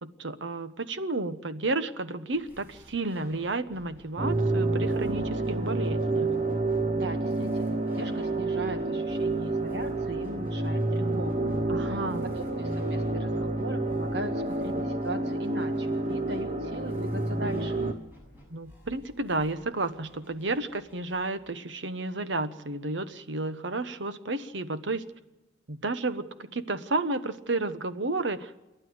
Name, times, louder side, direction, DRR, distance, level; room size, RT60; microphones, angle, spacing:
voice 1, 0.0-6.3 11.7-12.3 18.5-25.0 25.7-28.5, right 2 dB, 80° right, 12 dB, 1.1 m, -32 dB
sound 1, 2.3-21.5, equal, 10° right, 6.5 m, -55 dB
sound 2, 4.2-17.9, right 2 dB, 35° right, 1.0 m, -29 dB
voice 2, 7.0-17.9, right 1 dB, 60° right, 6 dB, 1.8 m, -39 dB
28.5 x 11.5 x 8.0 m, 1.0 s
head